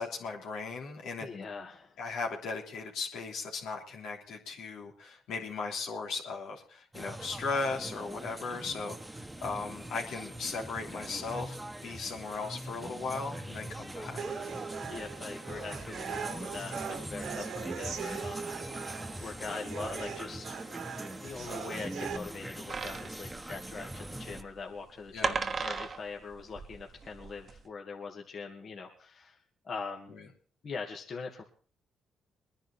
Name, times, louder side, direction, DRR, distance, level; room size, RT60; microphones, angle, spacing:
voice 1, 0.0-1.3 2.0-14.2 25.1-25.4 30.1-30.2, left 4 dB, 80° left, 0 dB, 3.2 m, -37 dB
voice 2, 1.2-2.0 14.9-29.4 29.6-30.2 30.6-31.4, left 5 dB, 55° left, 1 dB, 2.5 m, -42 dB
sound 1, 6.9-24.4, right 1 dB, 10° right, 1.3 m, -42 dB
sound 2, 14.2-22.2, right 7 dB, 70° right, 1.8 m, -40 dB
sound 3, 22.7-27.6, right 5 dB, 45° right, 1.3 m, -36 dB
22.0 x 10.5 x 4.4 m, 0.42 s
supercardioid pair, 70°, 0 cm